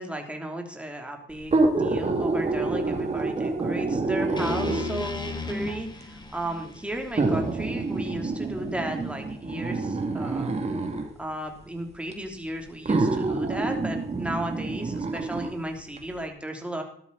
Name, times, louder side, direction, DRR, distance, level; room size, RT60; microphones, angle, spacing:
voice 1, 0.0-10.5 11.2-16.8, right 1 dB, 5° right, 2 dB, 3.2 m, -34 dB
sound 1, 1.4-5.1 6.0-6.1 7.2-11.1 12.1-12.2 12.9-15.5 16.0-16.1, right 3 dB, 35° right, 2.5 m, -27 dB
sound 2, 4.4-8.5, left 4 dB, 20° left, 2.2 m, -36 dB
14.0 x 12.5 x 4.1 m, 0.63 s
cardioid pair, 90°, 20 cm